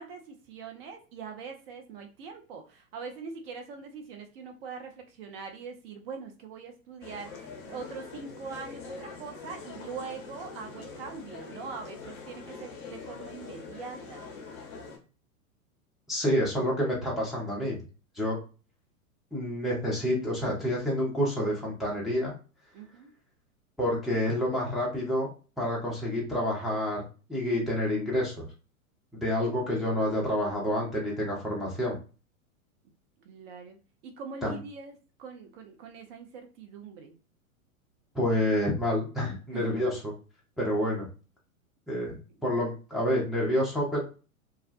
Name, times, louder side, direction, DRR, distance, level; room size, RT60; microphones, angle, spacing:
voice 1, 0.0-14.2 22.7-23.1 33.2-33.8 34.0-37.2 39.5-39.7, right 5 dB, 45° right, 5 dB, 0.7 m, -42 dB
sound 1, 7.0-15.0, left 4 dB, 30° left, 0.7 m, -44 dB
voice 2, 16.1-17.8 18.2-18.4 19.3-22.3 23.8-25.3 25.6-28.5 29.1-32.0 34.4-34.6 38.1-40.1 40.6-41.1 41.9-44.0, left 1 dB, ahead, -5 dB, 0.4 m, -28 dB
2.4 x 2.1 x 2.5 m, 0.34 s
hypercardioid pair, 105°, 43 cm